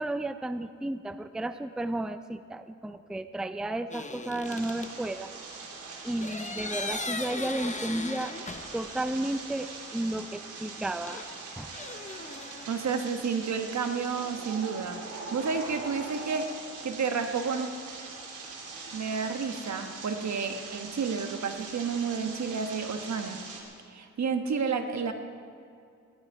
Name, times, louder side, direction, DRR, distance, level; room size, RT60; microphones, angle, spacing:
voice 1, 0.0-5.3 6.0-8.4 8.7-11.2 11.6-11.7, right 1 dB, ahead, 11 dB, 0.5 m, -33 dB
sound 1, 3.9-4.9 6.2-9.1 9.3-9.4 11.1-12.7, left 3 dB, 25° left, 0.9 m, -38 dB
sound 2, 4.4-23.6, right 3 dB, 90° right, 2.6 m, -42 dB
voice 2, 12.7-16.5 16.8-17.7 18.9-23.4 23.9-25.1, right 5 dB, 65° right, 6 dB, 1.3 m, -31 dB
18.0 x 12.0 x 4.7 m, 2.5 s
cardioid pair, 65°, 30 cm